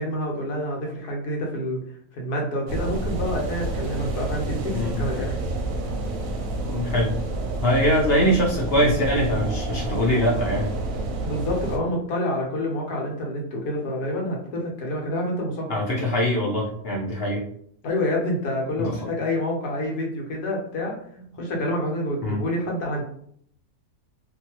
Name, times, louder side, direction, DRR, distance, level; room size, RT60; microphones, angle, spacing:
voice 1, 0.0-1.8 2.1-5.4 11.2-15.7 17.8-21.0 21.3-23.0, left 1 dB, 85° left, -1 dB, 1.4 m, -28 dB
sound 1, 2.7-11.8, right 2 dB, 70° right, 0.9 m, -29 dB
voice 2, 6.6-7.1 7.6-10.7 15.7-17.4 18.8-18.9 22.2-22.4, equal, 55° left, -4 dB, 0.7 m, -22 dB
2.8 x 2.6 x 2.8 m, 0.66 s
omnidirectional pair, 1.6 m